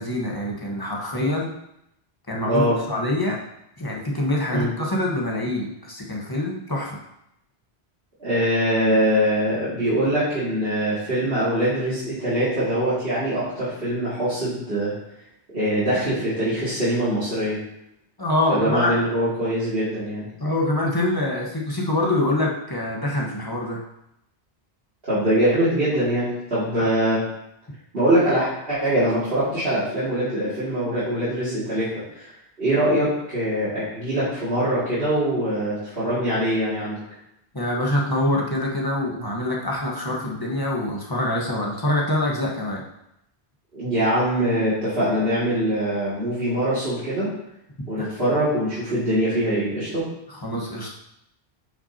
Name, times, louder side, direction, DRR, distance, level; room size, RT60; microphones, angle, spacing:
voice 1, 0.0-1.5 2.3-3.4 3.8-7.0 18.2-18.9 20.4-23.8 26.8-26.9 37.5-42.8 48.0-48.1 50.4-50.9, left 1 dB, 20° left, -2 dB, 1.3 m, -25 dB
voice 2, 2.4-2.8 4.5-4.7 8.2-14.9 15.5-17.6 18.5-20.3 25.1-27.2 27.9-31.9 32.1-32.3 32.6-37.0 43.7-47.3 47.9-50.0, right 1 dB, 65° right, -13 dB, 2.9 m, -23 dB
9.3 x 5.8 x 2.9 m, 0.80 s
omnidirectional pair, 1.1 m